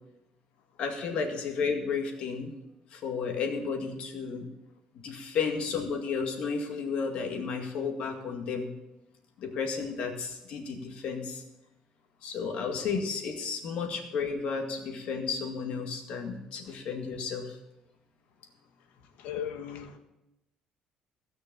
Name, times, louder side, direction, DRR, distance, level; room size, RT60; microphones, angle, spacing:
voice 1, 0.8-2.5 2.9-4.5 4.9-8.7 9.4-11.4 12.2-17.6, left 5 dB, 55° left, 3 dB, 2.1 m, -32 dB
voice 2, 18.8-20.0, left 9 dB, 85° left, 7 dB, 1.5 m, -39 dB
16.0 x 6.7 x 7.1 m, 0.96 s
cardioid pair, 165°, 2 cm